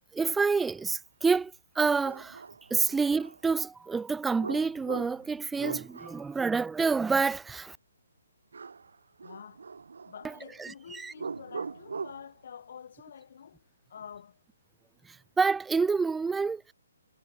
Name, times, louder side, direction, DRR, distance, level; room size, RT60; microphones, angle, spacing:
voice 1, 0.1-2.4 2.7-7.8 10.6-11.1 15.1-16.7, right 4 dB, 5° right, 0.3 m, -28 dB
sound 1, 1.4-1.5 2.0-3.4 4.4-6.4 8.5-8.9 9.2-10.4 11.1-12.3, right 5 dB, 70° right, 3.9 m, -40 dB
voice 2, 9.2-9.7 10.0-14.4, left 7 dB, 55° left, 5.5 m, -48 dB
figure-of-eight pair, 135°, 0 cm